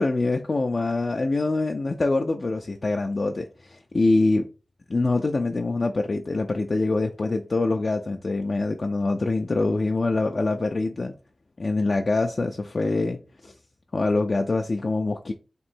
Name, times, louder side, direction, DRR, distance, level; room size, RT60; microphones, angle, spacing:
voice 1, 0.0-4.5 4.9-11.1 11.6-13.5 13.9-15.3, left 3 dB, 50° left, 0.3 m, -24 dB
3.0 x 2.6 x 4.3 m
wide cardioid pair, 80°, 0 cm